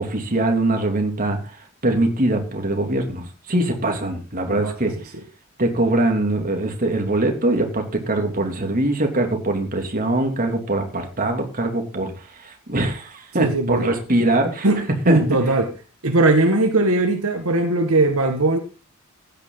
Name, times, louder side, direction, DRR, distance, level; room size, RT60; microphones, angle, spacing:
voice 1, 0.0-1.4 1.8-4.9 5.6-12.1 12.4-14.7 15.1-15.2, right 2 dB, 40° right, 2.9 m, -22 dB
voice 2, 13.4-14.0 14.6-15.7 16.0-18.6, right 2 dB, 70° right, 1.9 m, -19 dB
15.5 x 10.0 x 4.0 m
head